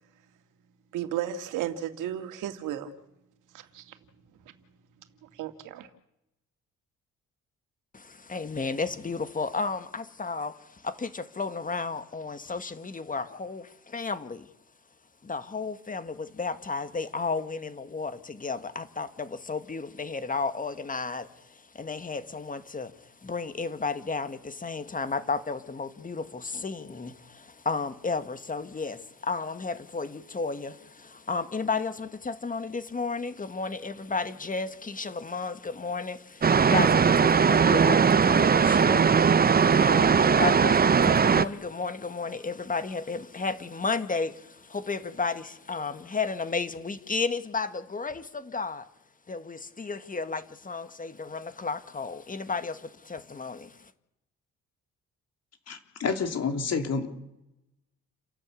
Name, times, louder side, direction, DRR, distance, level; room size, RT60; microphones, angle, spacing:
voice 1, 0.9-2.9 3.5-4.0 4.4-4.5 5.2-5.9, right 11 dB, 90° right, 2.3 m, -34 dB
voice 2, 7.9-14.5 15.2-48.9 49.3-53.9, left 4 dB, 25° left, 1.9 m, -33 dB
sound 1, 36.4-41.5, right 6 dB, 30° right, 0.9 m, -20 dB
voice 3, 55.7-57.1, left 5 dB, 55° left, 3.7 m, -29 dB
29.5 x 12.0 x 8.6 m
cardioid pair, 90°, 30 cm